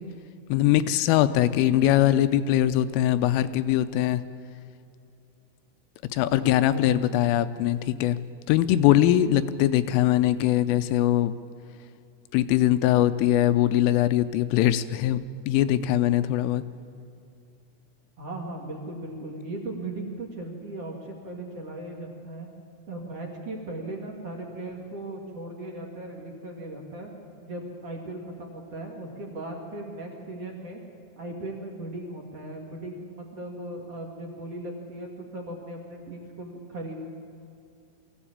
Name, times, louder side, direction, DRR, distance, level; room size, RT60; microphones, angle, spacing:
voice 1, 0.5-4.2 6.1-8.2 8.5-11.3 12.3-15.2 15.5-16.6, left 13 dB, 85° left, 12 dB, 3.1 m, -22 dB
voice 2, 6.2-7.4 18.2-22.5 22.9-27.1 27.4-30.8 31.2-37.0, right 1 dB, 45° right, 0 dB, 2.3 m, -38 dB
23.0 x 15.5 x 8.7 m, 2.6 s
omnidirectional pair, 5.9 m